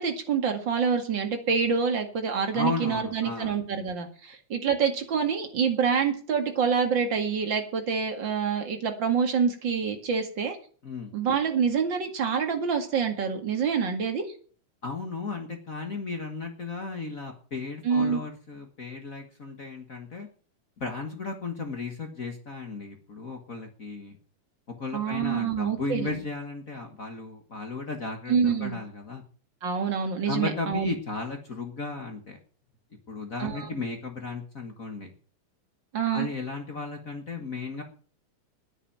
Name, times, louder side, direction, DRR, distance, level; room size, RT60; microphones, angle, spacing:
voice 1, 0.0-10.6 11.1-14.2 17.8-18.2 24.9-26.2 28.3-28.8 29.6-30.9 33.4-33.7 35.9-36.3, right 6 dB, 40° right, 5 dB, 2.5 m, -26 dB
voice 2, 2.5-3.5 10.8-11.1 14.8-20.3 20.8-24.2 24.8-29.2 30.2-32.4 33.1-35.1 36.1-37.8, left 3 dB, 40° left, 4 dB, 1.2 m, -35 dB
10.0 x 9.3 x 8.8 m, 0.43 s
omnidirectional pair, 3.6 m